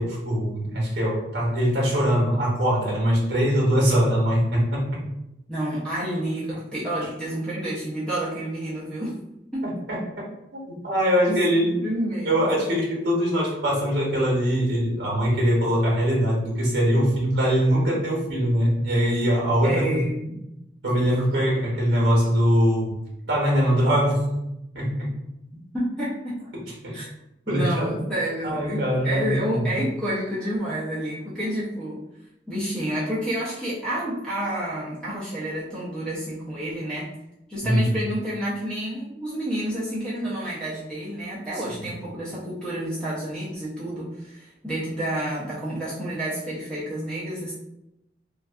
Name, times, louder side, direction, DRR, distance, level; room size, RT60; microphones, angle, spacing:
voice 1, 0.0-5.0 9.9-10.0 10.5-11.9 12.2-20.0 20.8-23.0 23.3-24.3 24.7-25.1 26.8-26.9 27.5-28.0 28.4-29.8 37.6-38.0 41.8-41.9, equal, 70° right, -3 dB, 0.8 m, -22 dB
voice 2, 5.5-9.2 9.5-9.7 11.3-11.4 11.8-12.7 19.6-20.4 25.7-26.5 26.9-27.1 27.5-32.0 32.5-37.1 37.5-47.5, right 1 dB, 5° left, -9 dB, 0.5 m, -29 dB
2.5 x 2.3 x 2.3 m, 0.87 s
head